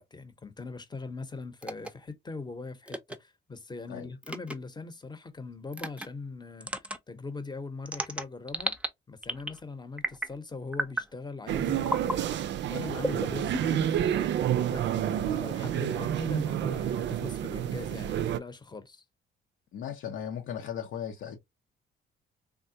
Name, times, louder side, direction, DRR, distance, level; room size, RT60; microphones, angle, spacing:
voice 1, 0.0-6.7 7.1-8.7 9.1-12.4 12.7-14.3 14.7-19.0, left 3 dB, 20° left, 0.8 m, -41 dB
sound 1, 1.6-1.9 2.9-3.2 4.2-4.5 5.7-6.1 6.6-7.0 7.8-8.9 9.2-9.6 10.0-10.4 10.7-11.1 11.8-12.2 13.0-13.9, right 1 dB, 5° right, 0.5 m, -33 dB
sound 2, 11.5-18.4, right 10 dB, 65° right, 0.4 m, -29 dB
voice 2, 19.7-21.4, left 9 dB, 75° left, 0.7 m, -37 dB
3.5 x 2.2 x 2.7 m
cardioid pair, 90°, 20 cm